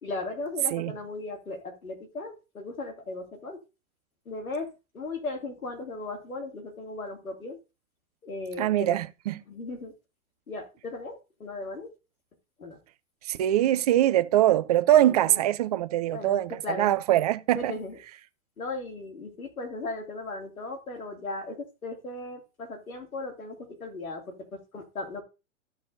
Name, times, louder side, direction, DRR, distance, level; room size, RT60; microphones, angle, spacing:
voice 1, 0.0-3.6 4.3-7.6 8.2-9.0 9.5-9.9 10.5-11.9 12.6-12.8 15.2-15.4 16.1-16.9 17.5-18.0 18.6-25.2, left 3 dB, 80° left, 2.5 m, -37 dB
voice 2, 8.6-9.4 13.2-17.7, right 13 dB, 30° right, 0.4 m, -23 dB
13.5 x 6.4 x 2.6 m
figure-of-eight pair, 110°, 41 cm